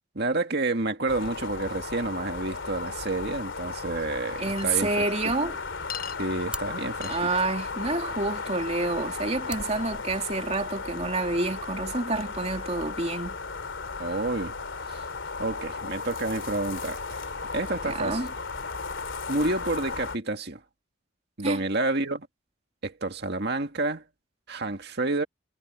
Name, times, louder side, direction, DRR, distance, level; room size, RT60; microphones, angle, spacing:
voice 1, 0.1-5.0 5.2-5.3 6.2-7.3 14.0-14.5 14.9-15.0 15.4-18.2 19.3-20.6 21.4-22.3 22.8-24.0 24.5-25.2, right 2 dB, 55° right, 2.1 m, -29 dB
sound 1, 1.1-20.2, left 4 dB, 65° left, 3.1 m, -35 dB
voice 2, 4.4-5.5 7.1-13.4 17.8-18.3 21.4-21.6, right 3 dB, 30° right, 3.1 m, -28 dB
Chink clink, 4.5-4.7 5.9-6.2 7.0-7.2, left 9 dB, 45° left, 1.1 m, -37 dB
sound 2, 5.7-10.7, right 2 dB, 5° right, 4.5 m, -46 dB
head